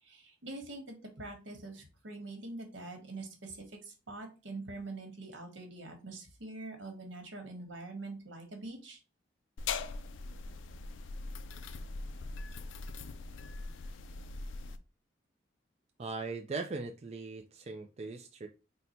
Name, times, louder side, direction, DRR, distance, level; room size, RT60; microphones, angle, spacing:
voice 1, 0.0-9.0, right 2 dB, 80° right, 1.3 m, -44 dB
sound 1, 9.6-14.8, left 4 dB, 85° left, 0.4 m, -41 dB
voice 2, 16.0-18.5, right 3 dB, 35° right, 0.4 m, -39 dB
4.0 x 2.2 x 4.2 m
head